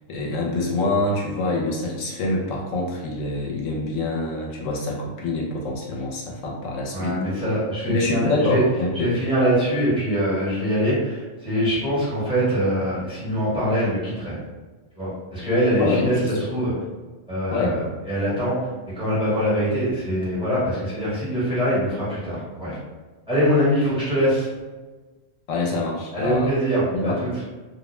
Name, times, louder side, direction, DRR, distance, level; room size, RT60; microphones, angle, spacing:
voice 1, 0.1-7.2 7.9-9.1 15.8-16.3 17.5-17.7 25.5-26.5 26.9-27.2, left 2 dB, 85° left, -2 dB, 1.0 m, -25 dB
voice 2, 6.9-8.6 8.9-14.4 14.9-16.7 17.3-18.7 18.9-22.8 23.3-24.5 26.1-27.3, equal, 5° right, -10 dB, 1.0 m, -23 dB
2.4 x 2.1 x 3.0 m, 1.3 s
omnidirectional pair, 1.3 m